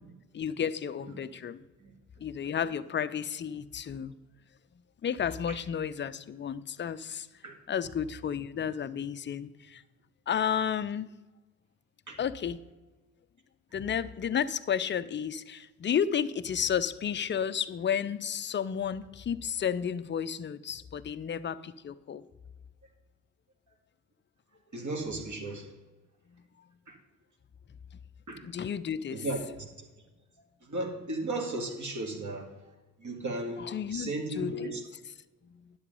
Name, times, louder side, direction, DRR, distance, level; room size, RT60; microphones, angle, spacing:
voice 1, 0.3-1.6 2.2-4.1 5.0-7.3 7.7-9.8 10.3-11.1 12.2-12.6 13.7-22.2 28.4-29.3 33.6-34.7 35.5-35.7, left 8 dB, 25° left, 14 dB, 0.5 m, -32 dB
voice 2, 24.7-25.7 26.9-27.0 28.3-28.4 29.1-29.4 30.7-32.5 33.0-34.8, right 2 dB, 40° right, 2 dB, 2.3 m, -35 dB
11.0 x 7.3 x 5.3 m, 1.1 s
figure-of-eight pair, 45°, 47 cm